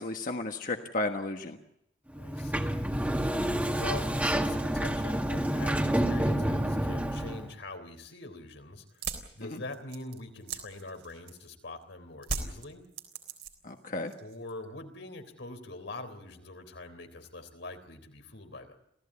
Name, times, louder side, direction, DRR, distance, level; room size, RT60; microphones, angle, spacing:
voice 1, 0.0-1.6 13.6-14.1, left 2 dB, 50° left, 4 dB, 1.4 m, -33 dB
Sliding door, 2.1-7.5, right 1 dB, 10° right, 1.7 m, -29 dB
voice 2, 2.2-3.0 3.7-8.8 9.4-12.8 14.2-18.7, left 2 dB, 90° left, 7 dB, 3.7 m, -43 dB
sound 1, 8.9-11.6 12.2-13.8 14.1-14.6, right 5 dB, 75° right, 3.8 m, -38 dB
27.0 x 16.5 x 8.5 m, 0.79 s
head